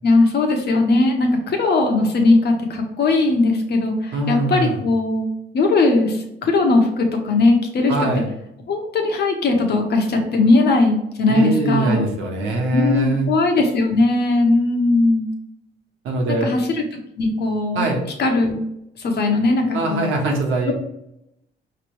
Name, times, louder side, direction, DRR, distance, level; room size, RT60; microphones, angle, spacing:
voice 1, 0.0-5.3 5.5-7.9 8.7-12.1 12.7-15.2 16.3-16.8 17.2-17.9 18.2-18.6 19.0-20.1 20.7-20.8, left 2 dB, 55° left, 2 dB, 1.2 m, -18 dB
voice 2, 4.1-4.8 7.9-8.3 11.3-13.3 16.0-16.6 17.7-18.0 19.7-20.7, right 2 dB, 85° right, 0 dB, 1.3 m, -22 dB
5.1 x 3.3 x 3.1 m, 0.81 s
cardioid pair, 90°, 20 cm